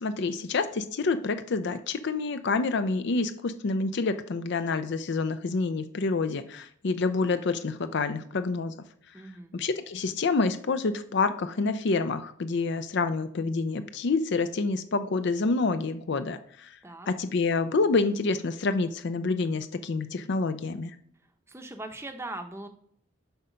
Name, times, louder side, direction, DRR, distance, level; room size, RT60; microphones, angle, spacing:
voice 1, 0.0-8.7 9.5-16.8 17.1-20.9, left 3 dB, 55° left, 10 dB, 0.5 m, -28 dB
voice 2, 9.1-9.5 16.8-17.1 21.5-22.7, right 2 dB, 15° right, 6 dB, 0.7 m, -40 dB
7.9 x 5.6 x 5.1 m, 0.66 s
head